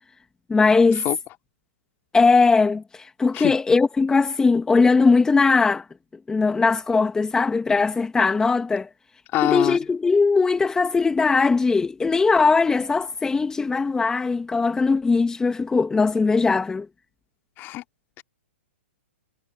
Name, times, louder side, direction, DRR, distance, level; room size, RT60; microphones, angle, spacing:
voice 1, 0.5-1.1 2.1-5.9 6.3-8.9 9.4-16.9, left 4 dB, 10° left, 2.0 m, -20 dB
voice 2, 9.3-9.8 17.6-17.8 18.2-18.3, left 17 dB, 30° left, 2.9 m, -24 dB
hypercardioid pair, 125°, 7 cm